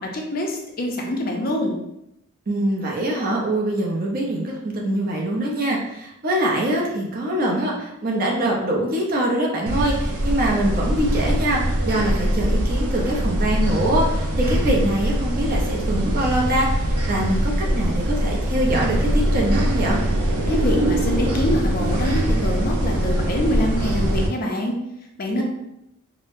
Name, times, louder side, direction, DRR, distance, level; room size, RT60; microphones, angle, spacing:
voice 1, 0.0-1.8 20.5-24.8 25.2-25.4, left 1 dB, 40° left, 1 dB, 0.5 m, -25 dB
voice 2, 2.5-20.0 25.4-25.5, right 1 dB, 40° right, -1 dB, 0.6 m, -23 dB
sound 1, 9.7-24.3, right 1 dB, 85° right, 0.5 m, -22 dB
3.9 x 2.0 x 2.5 m, 0.84 s
head